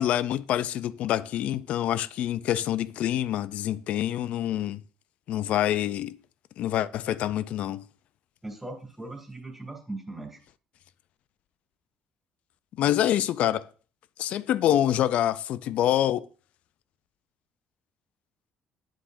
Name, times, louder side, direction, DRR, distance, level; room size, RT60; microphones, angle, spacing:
voice 1, 0.0-4.8 5.3-6.2 6.6-7.8 12.8-13.7 14.2-16.3, left 12 dB, 65° left, 0.4 m, -26 dB
voice 2, 8.4-10.4, right 2 dB, 5° right, 2.5 m, -39 dB
9.0 x 7.2 x 2.6 m
cardioid pair, 105°, 2 cm